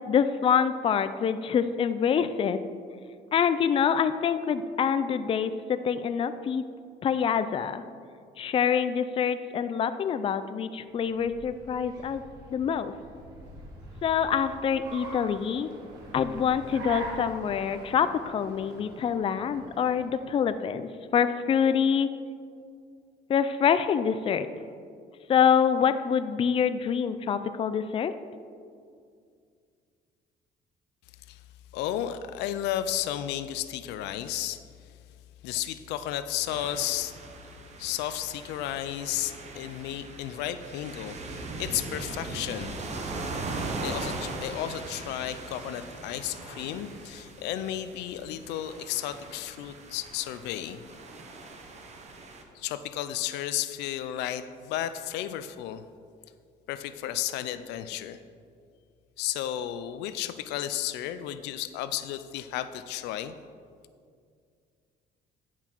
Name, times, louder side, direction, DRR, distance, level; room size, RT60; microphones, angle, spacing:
voice 1, 0.1-2.6 3.3-6.6 7.0-7.8 8.4-12.2 12.5-12.9 14.0-15.7 16.1-22.1 23.3-24.5 25.3-28.1, left 7 dB, 35° left, 11 dB, 0.4 m, -26 dB
Car, 10.9-20.4, right 2 dB, 80° right, 1.7 m, -44 dB
voice 2, 31.7-34.6 35.4-37.2 37.8-42.7 43.8-50.8 52.5-55.8 56.7-58.2 59.2-63.4, left 12 dB, 90° left, 12 dB, 0.5 m, -33 dB
sound 1, 36.5-52.4, right 3 dB, 40° right, 1.1 m, -39 dB
10.5 x 5.8 x 4.5 m, 2.2 s
cardioid pair, 110°, 17 cm